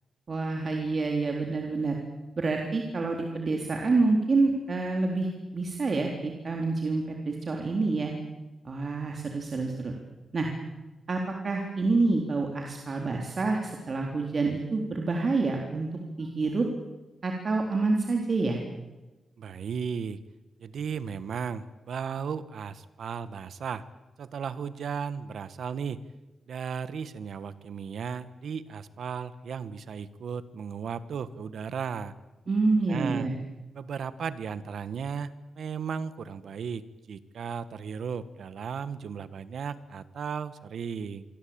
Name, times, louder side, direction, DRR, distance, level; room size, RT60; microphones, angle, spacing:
voice 1, 0.3-2.0 2.4-8.1 8.6-9.9 10.3-10.5 11.1-15.9 16.2-16.7 17.2-18.6 32.5-33.3, right 3 dB, 45° right, 2 dB, 3.8 m, -27 dB
voice 2, 19.4-20.2 20.6-23.9 24.2-26.0 26.5-32.1 32.9-33.3 33.7-41.2, right 6 dB, 75° right, 14 dB, 1.5 m, -35 dB
27.0 x 24.0 x 8.9 m, 1.1 s
cardioid pair, 95°, 0 cm